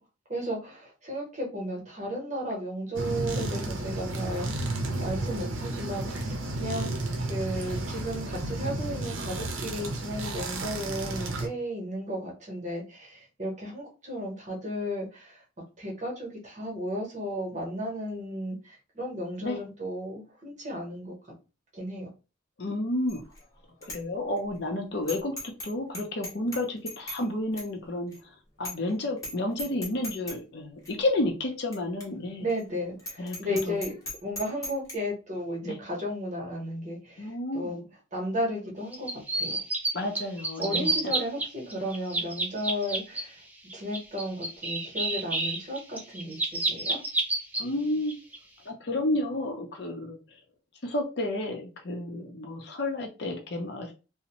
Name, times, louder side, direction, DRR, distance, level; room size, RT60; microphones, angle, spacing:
voice 1, 0.3-4.7 5.0-15.4 15.8-21.2 21.7-22.1 32.4-33.9 34.2-37.8 38.1-39.6 40.6-43.4 43.7-47.0, equal, 35° right, -2 dB, 0.9 m, -34 dB
sound 1, 2.9-11.5, right 2 dB, 80° right, 0.6 m, -32 dB
voice 2, 22.6-23.2 23.8-28.1 28.6-32.5 33.2-33.8 35.6-35.8 37.2-37.8 39.9-41.1 47.6-48.1 48.7-50.2 50.8-53.9, left 1 dB, 55° left, 2 dB, 0.6 m, -31 dB
Bicycle bell, 23.1-23.4 23.8-24.0 24.4-24.5 25.1-25.7 25.9-27.2 27.6-27.7 28.1-28.2 28.6-28.9 29.2-29.3 29.6-30.4 30.8-30.9 31.7-31.8 32.0-32.1 32.5-32.6 33.0-34.9, left 1 dB, 15° left, 0.7 m, -37 dB
sound 2, 38.9-39.9 40.1-41.4 41.7-43.2 43.7-47.6 48.1-48.4, right 2 dB, 10° right, 0.3 m, -29 dB
2.6 x 2.0 x 2.9 m, 0.31 s
head